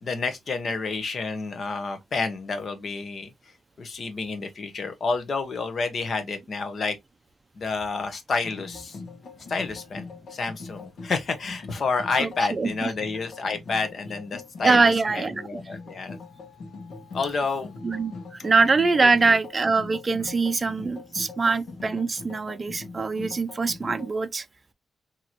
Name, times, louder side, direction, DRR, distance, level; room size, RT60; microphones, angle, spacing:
voice 1, 0.0-3.3 3.8-7.0 7.6-9.0 9.5-14.8 15.1-16.2 17.1-17.7 19.0-19.4 20.2-20.3, left 4 dB, 45° left, 1.1 m, -29 dB
sound 1, 8.3-24.1, left 3 dB, 75° left, 1.3 m, -42 dB
voice 2, 12.2-12.9 14.6-15.5 17.8-18.1 18.4-24.5, right 4 dB, 25° right, 0.5 m, -23 dB
4.5 x 3.0 x 2.9 m
wide cardioid pair, 155°, 0 cm